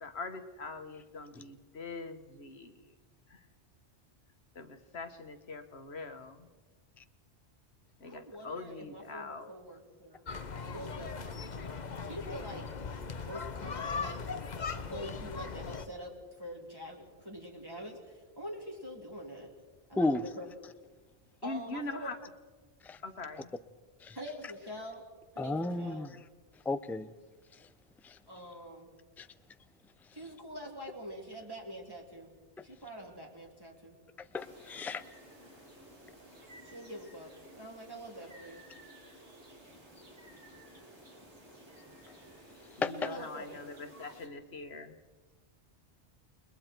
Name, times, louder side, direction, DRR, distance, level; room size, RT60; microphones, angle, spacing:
voice 1, 0.0-2.9 3.3-3.5 4.6-6.5 8.0-9.5 21.4-22.2 23.0-23.5 42.8-45.0, left 3 dB, 65° left, 8 dB, 1.6 m, -43 dB
voice 2, 8.1-10.3 10.6-11.7 12.0-14.6 14.8-19.5 19.9-20.5 21.4-22.1 24.1-25.0 25.3-26.1 28.3-28.9 30.1-32.3 32.6-34.0 36.6-38.6 42.9-43.6, equal, 20° right, -1 dB, 3.2 m, -45 dB
sound 1, 10.3-15.9, left 5 dB, 40° left, 1.0 m, -39 dB
voice 3, 25.4-26.1 26.7-27.1 28.0-28.2 29.2-29.3 34.3-35.0 42.8-43.1, left 2 dB, ahead, 12 dB, 0.5 m, -33 dB
sound 2, 34.3-44.3, right 1 dB, 90° right, 3.6 m, -54 dB
29.5 x 21.5 x 4.5 m, 1.3 s
omnidirectional pair, 1.1 m